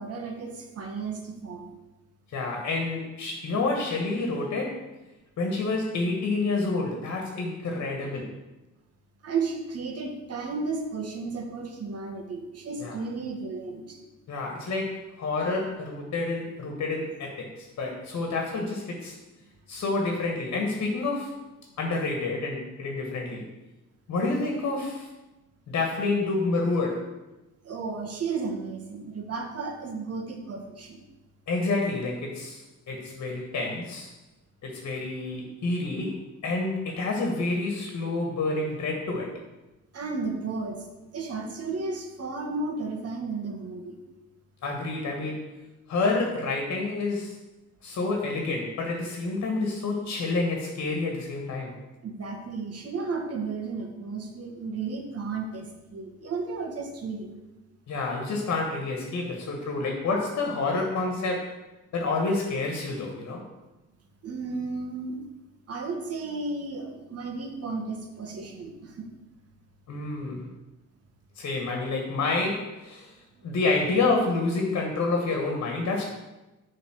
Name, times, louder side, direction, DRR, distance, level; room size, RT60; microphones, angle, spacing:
voice 1, 0.0-1.7 9.2-14.0 27.6-31.0 39.9-40.9 41.1-44.0 52.0-57.4 64.2-65.2 65.7-69.1, right 4 dB, 55° right, 3 dB, 1.4 m, -33 dB
voice 2, 2.3-4.9 5.4-8.3 12.8-13.0 14.3-19.2 19.7-21.4 21.8-23.5 24.1-25.1 25.7-27.1 31.5-34.1 34.6-39.4 44.6-45.5 45.9-47.4 47.8-51.8 57.9-61.5 61.9-63.4 69.9-70.5 71.3-73.1 73.4-76.0, left 3 dB, 60° left, 1 dB, 1.4 m, -28 dB
7.1 x 3.7 x 6.3 m, 1.1 s
cardioid pair, 90°, 30 cm